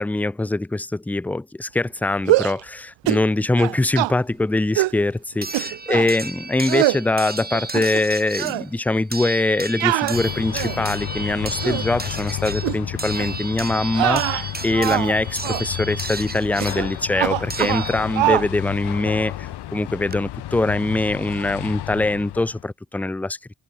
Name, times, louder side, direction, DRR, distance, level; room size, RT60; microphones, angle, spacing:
voice 1, 0.0-23.4, left 2 dB, 5° left, 0.3 m, -23 dB
sound 1, 2.2-2.6 3.1-3.3 3.6-4.1 4.8-5.0 5.5-6.1 6.7-7.0 7.5-8.1 8.4-8.6 9.8-10.9 11.4-11.9 12.6-12.8 13.2-13.4 13.9-15.1 15.4-15.7 16.6-16.9 17.1-17.9 18.2-18.5, right 18 dB, 70° right, 0.6 m, -23 dB
sound 2, 4.0-4.1 5.4-18.4 19.7-19.8 20.1-20.2, right 3 dB, 20° right, 2.1 m, -34 dB
sound 3, 10.1-22.6, left 14 dB, 60° left, 0.7 m, -32 dB
open air
supercardioid pair, 50°, 46 cm